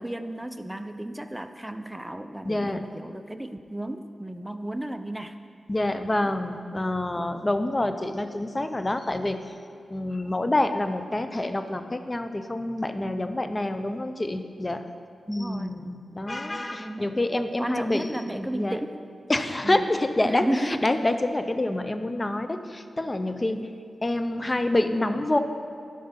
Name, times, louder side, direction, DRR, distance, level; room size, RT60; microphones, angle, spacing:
voice 1, 0.0-5.4 6.1-6.3 7.2-7.5 15.3-15.8 16.4-17.2 17.6-19.0 19.6-19.9 20.2-20.8 23.5-23.7, right 1 dB, 10° right, 9 dB, 0.6 m, -34 dB
voice 2, 2.4-2.9 5.7-9.5 9.9-14.8 15.3-18.8 19.3-23.7 24.0-25.4, left 1 dB, 30° left, 8 dB, 0.7 m, -27 dB
11.5 x 5.0 x 5.8 m, 2.5 s
cardioid pair, 50°, 0 cm